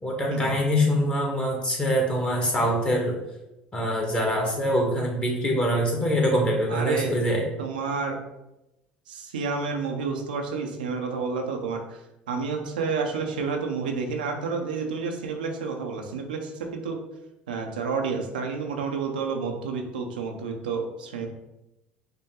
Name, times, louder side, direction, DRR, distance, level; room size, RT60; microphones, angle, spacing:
voice 1, 0.0-3.2 3.7-7.4, equal, 20° left, -1 dB, 1.5 m, -24 dB
voice 2, 6.7-7.2 7.6-8.2 9.1-12.0 12.3-17.0 17.5-21.3, right 4 dB, 90° right, 3 dB, 0.6 m, -30 dB
5.5 x 2.2 x 3.6 m, 0.94 s
hypercardioid pair, 70°, 5 cm